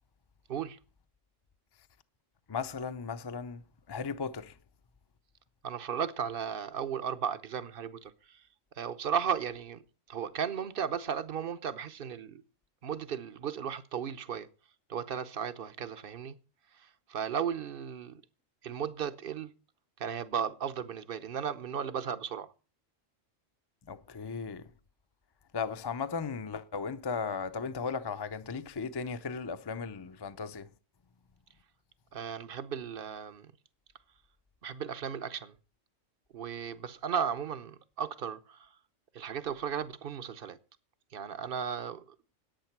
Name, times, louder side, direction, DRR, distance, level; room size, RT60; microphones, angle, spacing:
voice 1, 2.5-3.6 3.9-4.5 23.9-24.7 25.5-30.7, left 5 dB, 30° left, 0.5 m, -36 dB
voice 2, 5.6-8.4 8.8-9.8 10.1-12.4 12.8-14.5 14.9-16.3 16.8-18.2 18.6-19.5 20.0-22.5 32.1-33.5 34.6-35.5 36.3-38.7 39.1-40.6 41.1-42.0, right 7 dB, 50° right, 0.9 m, -35 dB
10.5 x 8.9 x 5.9 m
omnidirectional pair, 1.3 m